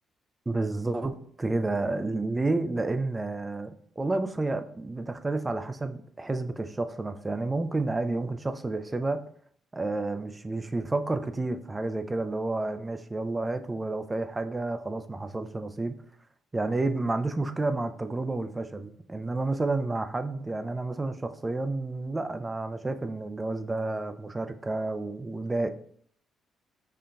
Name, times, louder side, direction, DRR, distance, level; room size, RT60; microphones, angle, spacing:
voice 1, 0.5-9.2 9.7-16.0 16.5-25.7, right 2 dB, 20° right, 10 dB, 0.3 m, -30 dB
5.5 x 2.5 x 2.2 m, 0.62 s
cardioid pair, 90°, 0 cm